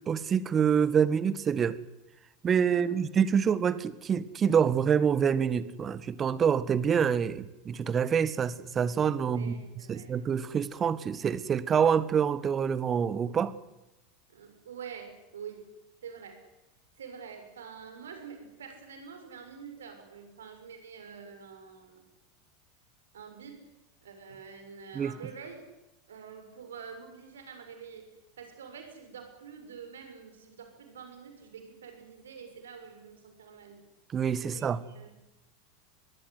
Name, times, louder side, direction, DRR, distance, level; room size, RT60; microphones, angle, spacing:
voice 1, 0.1-1.8 2.4-9.5 9.9-13.5 24.9-25.1 34.1-34.8, right 7 dB, 30° right, 1.6 m, -26 dB
voice 2, 2.6-2.9 9.2-10.1 14.3-15.7 16.0-16.4 17.0-22.1 23.1-23.7 24.0-25.5 26.1-28.1 28.4-33.8 34.4-35.2, right 6 dB, 75° right, 6.6 m, -46 dB
23.5 x 21.0 x 9.7 m
hypercardioid pair, 85°, 0 cm